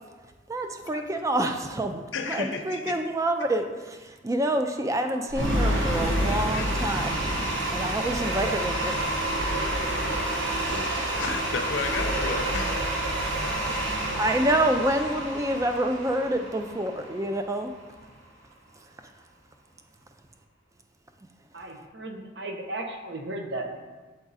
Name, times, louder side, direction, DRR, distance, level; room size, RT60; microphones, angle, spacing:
voice 1, 0.5-7.2 7.7-8.9 14.2-17.7 18.7-19.1, right 1 dB, 15° right, 0.4 m, -27 dB
voice 2, 2.1-2.9 6.3-6.8 9.9-14.2, left 4 dB, 75° left, 0.6 m, -35 dB
voice 3, 4.8-5.4 21.5-23.8, right 2 dB, 60° right, 0.8 m, -37 dB
sound 1, 5.3-17.4, right 1 dB, 85° right, 1.1 m, -28 dB
7.8 x 3.7 x 4.0 m
head